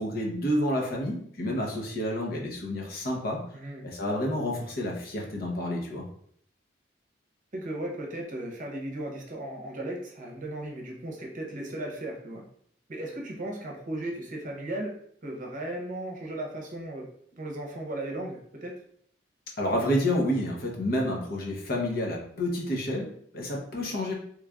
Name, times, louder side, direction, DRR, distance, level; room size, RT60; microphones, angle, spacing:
voice 1, 0.0-3.4 3.8-6.0 19.6-24.1, left 1 dB, 55° left, -1 dB, 0.8 m, -29 dB
voice 2, 3.5-3.9 7.5-12.4 12.9-17.1 17.4-18.7, right 1 dB, 45° right, 0 dB, 0.8 m, -36 dB
3.2 x 2.5 x 3.4 m, 0.65 s
head